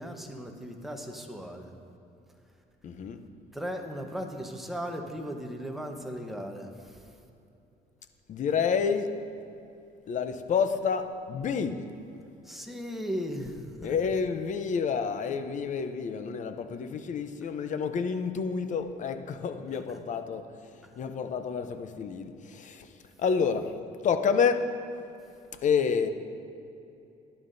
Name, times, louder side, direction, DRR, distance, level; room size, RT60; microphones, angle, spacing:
voice 1, 0.0-1.7 3.5-7.2 12.4-13.9 19.9-20.0 20.8-20.9, equal, ahead, 2 dB, 1.0 m, -37 dB
voice 2, 2.8-3.2 8.3-9.1 10.1-11.8 13.8-20.4 21.0-22.9 23.2-23.7 24.0-24.7 25.6-26.1, left 6 dB, 45° left, 9 dB, 0.7 m, -29 dB
15.0 x 11.0 x 2.7 m, 2.8 s
cardioid pair, 110°, 17 cm